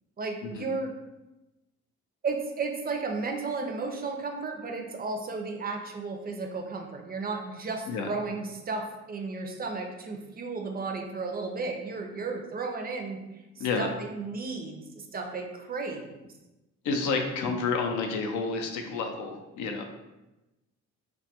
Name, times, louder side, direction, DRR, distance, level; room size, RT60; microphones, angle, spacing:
voice 1, 0.2-0.9 2.2-16.3, right 4 dB, 30° right, 3 dB, 0.4 m, -34 dB
voice 2, 13.6-13.9 16.8-19.8, left 4 dB, 90° left, 4 dB, 0.4 m, -30 dB
2.2 x 2.1 x 2.7 m, 1.0 s
cardioid pair, 90°, 30 cm